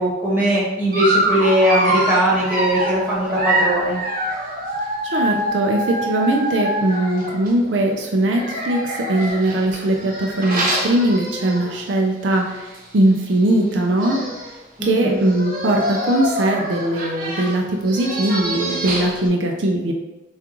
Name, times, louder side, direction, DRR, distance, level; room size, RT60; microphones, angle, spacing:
voice 1, 0.0-4.0 14.8-15.3, right 1 dB, 10° right, -8 dB, 1.4 m, -20 dB
Dog, 0.9-7.5 8.3-11.9 12.3-12.5 12.7-12.8 13.7-13.8 14.0-14.5 15.2-19.3, right 1 dB, 45° right, 0.8 m, -25 dB
voice 2, 5.0-14.2 14.8-19.9, right 1 dB, 70° right, 1 dB, 0.5 m, -20 dB
7.1 x 2.4 x 3.0 m, 1.1 s
head